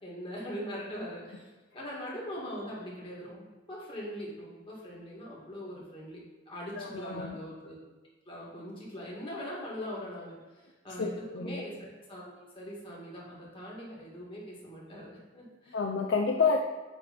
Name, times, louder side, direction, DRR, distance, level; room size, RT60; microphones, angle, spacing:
voice 1, 0.0-6.2 6.5-7.8 8.3-15.8, equal, 30° left, -5 dB, 2.1 m, -41 dB
voice 2, 6.8-7.4 11.0-11.6 15.7-16.6, left 4 dB, 70° left, 2 dB, 0.5 m, -29 dB
8.7 x 3.4 x 5.2 m, 1.2 s
head